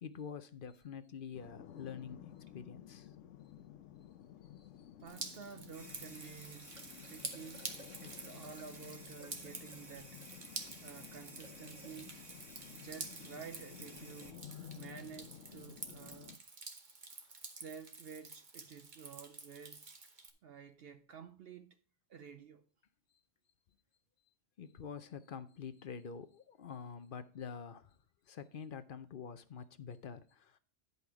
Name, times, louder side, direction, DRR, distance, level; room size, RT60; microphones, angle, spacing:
voice 1, 0.0-3.1 4.6-4.9 12.5-12.9 24.6-28.0 28.3-30.6, left 6 dB, 55° left, 0.7 m, -47 dB
sound 1, 1.3-16.3, left 10 dB, 85° left, 1.0 m, -54 dB
voice 2, 5.0-6.7 7.0-7.7 8.0-10.3 10.8-12.2 12.7-14.4 14.8-16.4 17.5-19.9 20.4-21.8 22.1-22.7, right 6 dB, 60° right, 0.8 m, -51 dB
Drip, 5.1-20.3, right 4 dB, 40° right, 1.2 m, -49 dB
sound 2, 5.7-14.3, right 1 dB, 25° right, 1.4 m, -55 dB
10.5 x 5.5 x 4.6 m
omnidirectional pair, 1.2 m